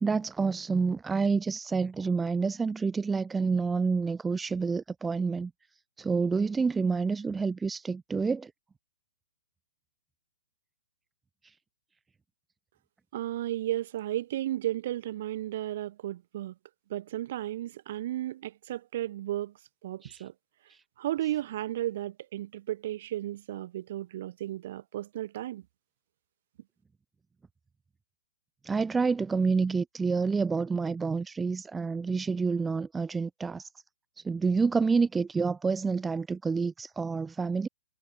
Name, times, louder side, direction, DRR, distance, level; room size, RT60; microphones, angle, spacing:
voice 1, 0.0-5.5 6.0-8.5 20.0-20.2 20.7-20.8 28.6-33.7 34.2-37.7, right 4 dB, 5° right, 0.8 m, -28 dB
voice 2, 13.1-16.6 16.9-19.5 19.8-20.3 21.0-25.6, right 13 dB, 45° right, 3.6 m, -34 dB
hypercardioid pair, 160°, 0 cm